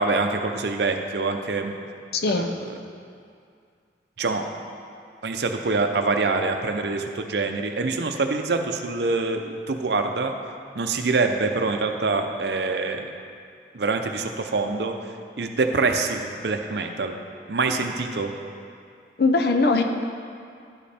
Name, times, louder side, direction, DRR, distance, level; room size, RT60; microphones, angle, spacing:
voice 1, 0.0-1.7 2.3-2.5 4.2-4.4 5.2-10.3 10.8-13.1 13.7-14.9 15.4-17.1 17.5-18.3, right 3 dB, 70° right, 5 dB, 0.6 m, -25 dB
voice 2, 2.1-2.5 19.2-19.8, left 3 dB, 60° left, 4 dB, 0.6 m, -20 dB
11.5 x 5.3 x 4.3 m, 2.3 s
head